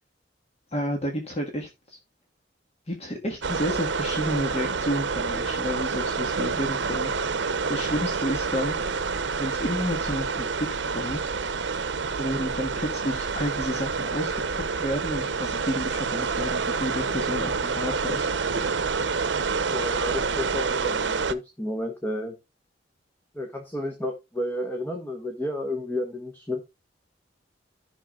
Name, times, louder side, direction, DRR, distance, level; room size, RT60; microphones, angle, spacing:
voice 1, 0.7-2.0 2.9-7.1 7.7-8.8 9.4-11.2 12.2-18.3, equal, 35° left, 1.6 m, -31 dB
sound 1, 3.4-21.3, right 5 dB, 75° right, 0.8 m, -28 dB
voice 2, 19.7-22.3 23.3-26.6, left 1 dB, 10° left, 1.4 m, -31 dB
15.0 x 6.0 x 2.4 m
head